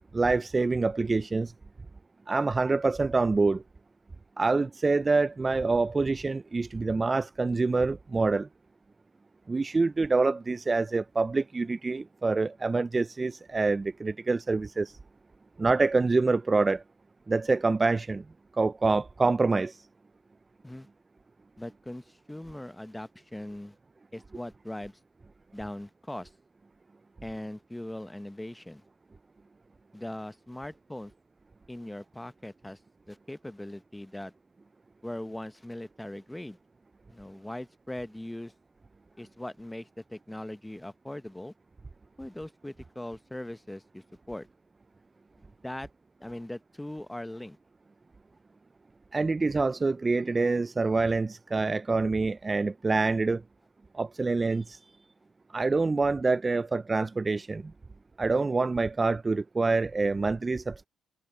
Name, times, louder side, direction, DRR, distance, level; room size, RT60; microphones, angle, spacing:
voice 1, 0.1-1.5 2.3-3.6 4.4-8.5 9.5-15.0 15.6-16.8 17.3-18.2 18.5-19.8 49.1-53.4 53.9-54.8 55.5-57.7 58.2-60.9, right 3 dB, 25° right, 0.3 m, -26 dB
voice 2, 21.6-23.8 24.1-25.0 25.5-26.3 27.2-28.8 29.9-31.1 31.7-32.8 33.1-34.3 35.0-36.6 37.1-38.5 39.2-41.5 42.2-44.5 45.4-45.9 46.2-47.6, left 1 dB, 10° left, 0.7 m, -40 dB
cardioid pair, 90°, 0 cm